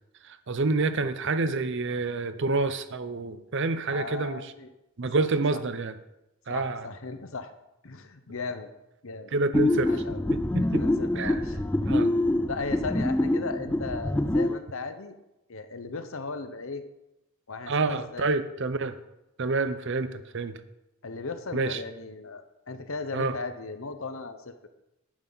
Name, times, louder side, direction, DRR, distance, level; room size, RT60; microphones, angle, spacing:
voice 1, 0.5-4.4 5.0-5.9 6.5-6.8 9.3-9.9 10.5-10.8 11.2-11.4 11.9-12.1 17.7-19.0 19.4-20.5 21.5-21.8 23.1-23.3, right 3 dB, 55° right, 12 dB, 0.7 m, -28 dB
voice 2, 3.9-4.7 5.2-5.3 5.5-5.6 6.5-7.5 7.8-8.7 9.0-9.3 9.9-10.2 10.6-11.7 12.5-15.1 15.5-16.8 17.5-18.3 21.0-24.7, left 4 dB, 65° left, 9 dB, 0.9 m, -37 dB
sound 1, 9.5-14.6, left 1 dB, 10° left, 0.3 m, -25 dB
11.0 x 9.8 x 4.1 m, 0.91 s
head